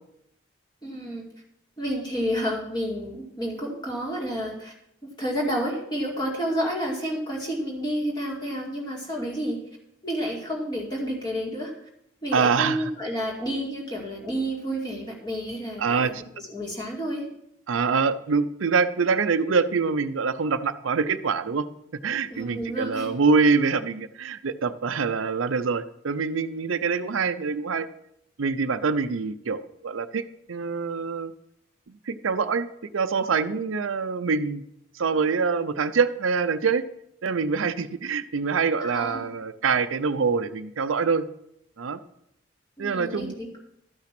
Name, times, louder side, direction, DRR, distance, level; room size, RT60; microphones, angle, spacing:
voice 1, 0.8-1.2 1.8-4.7 5.0-9.6 10.0-11.7 12.2-16.1 16.4-17.2 22.3-23.1 38.8-39.2 42.8-43.6, equal, 20° left, -2 dB, 2.3 m, -30 dB
voice 2, 12.3-12.8 15.8-16.2 17.7-21.7 22.0-27.9 28.4-31.3 32.1-34.6 34.9-36.8 37.2-41.2 41.8-42.0 42.8-43.3, right 5 dB, 85° right, 12 dB, 0.5 m, -25 dB
12.5 x 5.8 x 6.0 m, 0.79 s
head